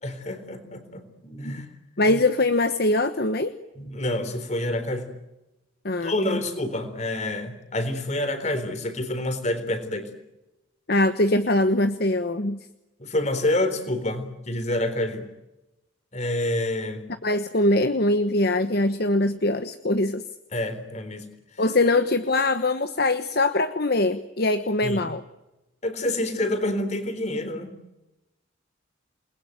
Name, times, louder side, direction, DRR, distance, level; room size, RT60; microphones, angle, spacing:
voice 1, 0.0-1.7 2.1-2.2 3.8-5.1 6.0-10.1 13.0-15.3 16.1-17.0 20.5-21.2 24.8-25.0 25.8-27.8, left 1 dB, 35° left, 10 dB, 3.8 m, -28 dB
voice 2, 2.0-3.5 5.8-6.4 10.9-12.6 17.2-20.2 21.6-25.2, left 2 dB, 50° left, 9 dB, 1.2 m, -22 dB
29.0 x 21.0 x 9.3 m, 0.98 s
head